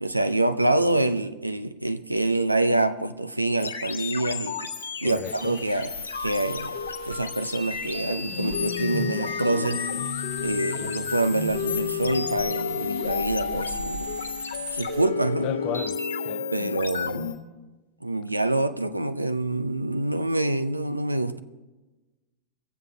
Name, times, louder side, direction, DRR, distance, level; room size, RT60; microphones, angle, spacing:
voice 1, 0.0-4.6 5.0-6.8 7.0-9.9 10.4-14.1 14.7-15.5 16.5-17.2 18.0-21.4, right 2 dB, 85° right, 0.6 m, -26 dB
sound 1, 3.6-17.4, left 5 dB, 70° left, 1.2 m, -31 dB
voice 2, 5.0-5.6 15.4-16.0 16.3-16.5, left 12 dB, 40° left, 0.6 m, -33 dB
sound 2, 5.2-15.1, right 4 dB, 55° right, 1.8 m, -46 dB
23.0 x 7.9 x 5.1 m
figure-of-eight pair, 90°, 0 cm